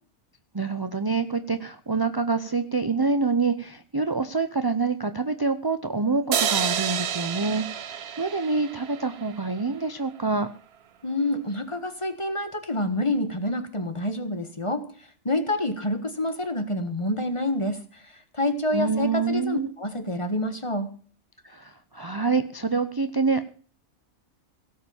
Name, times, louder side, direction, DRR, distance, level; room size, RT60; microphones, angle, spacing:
voice 1, 0.5-10.5 18.7-19.7 21.4-23.4, right 4 dB, 25° right, 10 dB, 0.6 m, -26 dB
sound 1, 6.3-9.6, right 8 dB, 55° right, 1.0 m, -29 dB
voice 2, 11.0-20.9, left 1 dB, 25° left, 9 dB, 1.5 m, -28 dB
17.5 x 7.6 x 7.2 m, 0.42 s
omnidirectional pair, 1.4 m